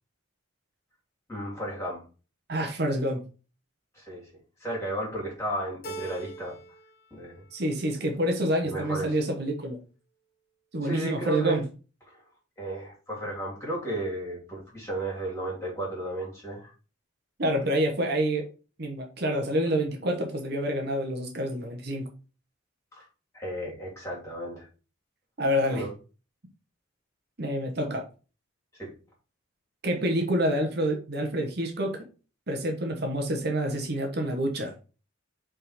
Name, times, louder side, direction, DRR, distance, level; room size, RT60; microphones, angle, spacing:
voice 1, 1.3-2.0 3.9-4.3 4.6-6.5 7.1-7.4 8.6-9.2 10.8-11.6 12.1-12.2 12.6-16.7 22.9-23.1 23.3-24.7 25.7-25.9 28.8-28.9, right 1 dB, 15° left, -3 dB, 2.8 m, -34 dB
voice 2, 2.5-3.2 7.5-9.8 10.7-11.6 17.4-18.5 18.8-22.1 25.4-25.8 27.4-28.0 29.8-32.0 32.5-34.7, equal, 50° right, 3 dB, 1.1 m, -27 dB
Keyboard (musical), 5.8-6.9 7.3-8.0, right 2 dB, 50° left, 0.9 m, -42 dB
5.5 x 3.7 x 4.9 m, 0.34 s
head